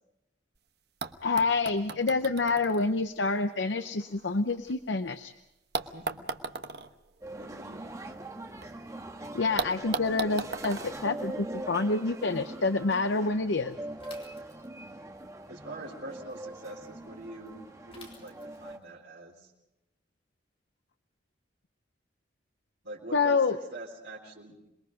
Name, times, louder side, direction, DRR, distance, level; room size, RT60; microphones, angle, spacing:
sound 1, 0.6-0.7 1.0-5.1 5.7-8.7 9.0-9.1 9.6-12.0 13.0-13.1, right 4 dB, 60° right, 1.1 m, -39 dB
voice 1, 1.2-5.3 9.3-13.8 23.1-23.6, left 3 dB, 85° left, 9 dB, 0.8 m, -27 dB
voice 2, 5.8-6.2 7.3-7.9 15.5-19.5 22.8-24.6, right 2 dB, 85° right, -5 dB, 3.8 m, -44 dB
sound 2, 7.2-18.8, right 1 dB, 20° right, 1.4 m, -42 dB
Bicycle / Mechanisms, 14.0-15.0 17.9-18.8, left 3 dB, 30° left, 3.8 m, -52 dB
27.0 x 21.5 x 5.2 m, 0.91 s
head